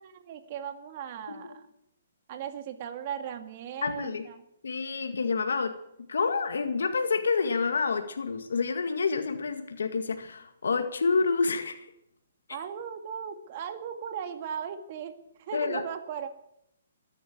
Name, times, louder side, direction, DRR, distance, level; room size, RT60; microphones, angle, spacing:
voice 1, 0.0-1.7 2.3-4.4 12.5-15.1 15.4-16.3, right 8 dB, 40° right, 8 dB, 2.1 m, -37 dB
voice 2, 3.8-4.3 4.6-5.7 6.1-11.9 15.5-15.8, left 4 dB, 80° left, 7 dB, 2.0 m, -28 dB
13.5 x 10.5 x 9.5 m, 0.77 s
hypercardioid pair, 150°, 0 cm